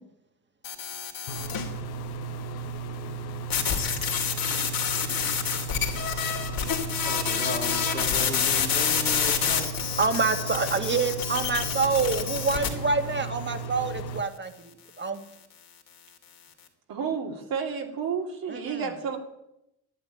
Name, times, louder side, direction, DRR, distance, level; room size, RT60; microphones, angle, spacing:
sound 1, 0.6-1.7 3.5-12.7, left 7 dB, 65° left, 2.8 m, -28 dB
sound 2, 1.3-14.2, right 4 dB, 80° left, 1.1 m, -35 dB
voice 1, 7.0-9.7, left 3 dB, 25° left, 3 dB, 2.2 m, -35 dB
voice 2, 10.0-14.5 15.0-15.2 18.5-18.9, right 4 dB, 30° right, 7 dB, 1.9 m, -27 dB
voice 3, 16.9-19.2, right 6 dB, 65° right, 1 dB, 2.9 m, -31 dB
11.0 x 9.7 x 9.2 m, 0.85 s
supercardioid pair, 75°, 37 cm